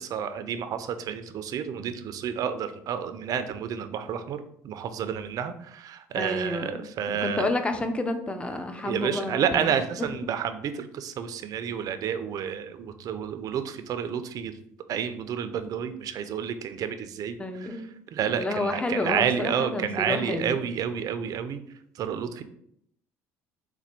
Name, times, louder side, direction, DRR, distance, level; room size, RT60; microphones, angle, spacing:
voice 1, 0.0-7.5 8.8-14.5 14.9-17.9 18.1-21.6 22.0-22.4, right 8 dB, 55° right, 10 dB, 0.4 m, -30 dB
voice 2, 6.2-9.7 17.4-17.9 18.3-20.6, left 2 dB, 15° left, 7 dB, 0.6 m, -30 dB
4.2 x 2.2 x 4.3 m, 0.72 s
supercardioid pair, 75°, 7 cm